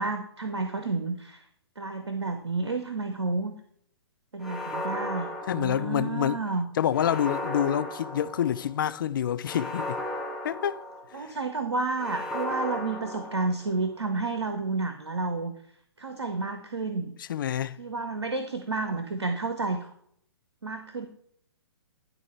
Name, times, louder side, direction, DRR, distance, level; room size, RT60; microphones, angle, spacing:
voice 1, 0.0-1.4 1.8-3.5 4.3-6.7 11.1-15.5 16.0-17.1 17.8-19.9 20.6-21.1, right 3 dB, 80° right, 0.7 m, -30 dB
sound 1, 4.4-6.3 6.9-8.7 9.4-11.3 12.0-13.9, left 1 dB, ahead, 0.9 m, -36 dB
voice 2, 5.5-6.4 6.8-10.0 10.4-10.8 17.2-17.8, left 10 dB, 50° left, 0.4 m, -27 dB
10.5 x 3.7 x 4.5 m
figure-of-eight pair, 120°, 14 cm